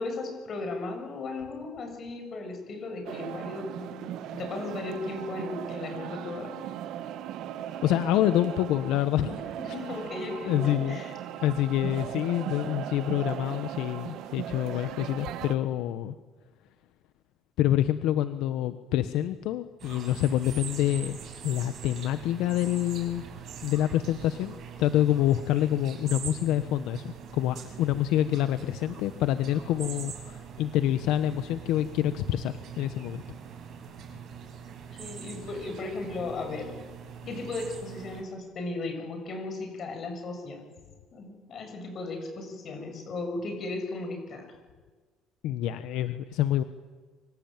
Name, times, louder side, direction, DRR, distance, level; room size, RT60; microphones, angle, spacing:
voice 1, 0.0-6.6 9.3-11.1 34.9-36.7 37.3-40.7 41.1-44.5, left 3 dB, 40° left, 5 dB, 7.2 m, -36 dB
sound 1, 3.0-15.5, right 11 dB, 65° right, 1.9 m, -38 dB
voice 2, 7.8-9.3 10.4-11.0 11.4-16.1 17.6-23.2 23.6-33.2 45.4-46.6, left 12 dB, 75° left, 11 dB, 1.0 m, -27 dB
sound 2, 19.8-38.2, right 7 dB, 50° right, 6.9 m, -43 dB
26.0 x 24.5 x 9.0 m, 1.4 s
cardioid pair, 135°, 0 cm